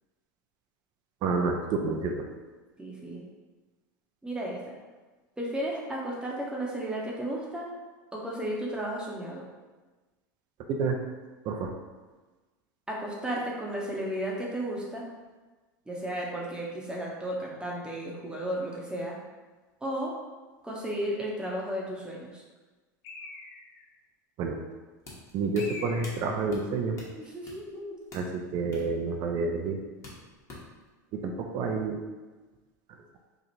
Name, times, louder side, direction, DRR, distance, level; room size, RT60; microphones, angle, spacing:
voice 1, 1.2-2.2 10.7-11.0 11.4-11.7 24.4-24.6 25.3-27.0 28.1-29.8 31.2-32.0, right 4 dB, 45° right, 3 dB, 0.5 m, -29 dB
voice 2, 2.8-3.2 4.2-4.7 5.4-7.7 8.1-9.4 12.9-15.0 15.9-19.1 19.8-20.1 20.6-22.4 27.2-27.9, right 1 dB, 10° right, -3 dB, 0.8 m, -34 dB
Bird, 23.0-23.9 25.6-26.5, left 3 dB, 55° left, 0.6 m, -43 dB
sound 1, 25.0-30.9, left 2 dB, 30° left, 1.2 m, -49 dB
3.0 x 2.4 x 4.1 m, 1.2 s
hypercardioid pair, 100°, 10 cm